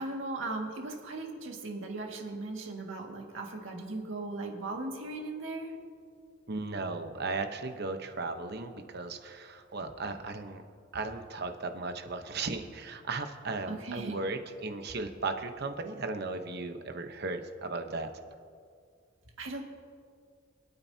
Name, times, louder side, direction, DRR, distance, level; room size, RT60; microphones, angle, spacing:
voice 1, 0.0-5.7 13.7-14.2 19.4-19.6, right 2 dB, 80° right, 0 dB, 2.0 m, -38 dB
voice 2, 6.5-10.6 10.9-18.1, right 3 dB, 55° right, 7 dB, 1.0 m, -36 dB
26.5 x 9.1 x 2.8 m, 2.1 s
head